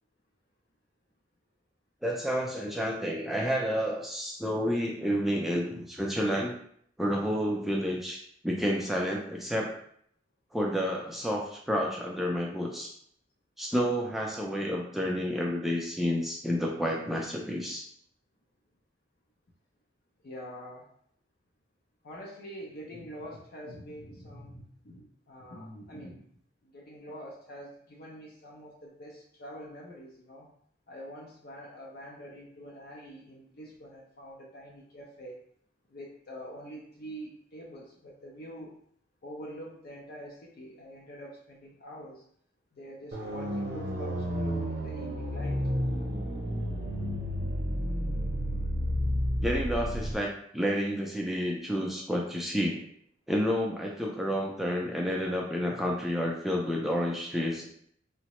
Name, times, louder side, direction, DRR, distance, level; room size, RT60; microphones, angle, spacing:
voice 1, 2.0-6.5 7.0-9.7 10.5-12.9 13.6-17.8 49.4-52.8 53.3-57.7, equal, ahead, -2 dB, 0.3 m, -30 dB
voice 2, 20.2-20.9 22.0-26.2 26.6-30.5 30.9-35.4 35.9-38.8 39.2-42.3 42.7-45.6, equal, 55° left, -2 dB, 0.5 m, -45 dB
sound 1, 43.1-50.1, equal, 60° right, 0.7 m, -31 dB
3.7 x 2.1 x 2.9 m, 0.65 s
head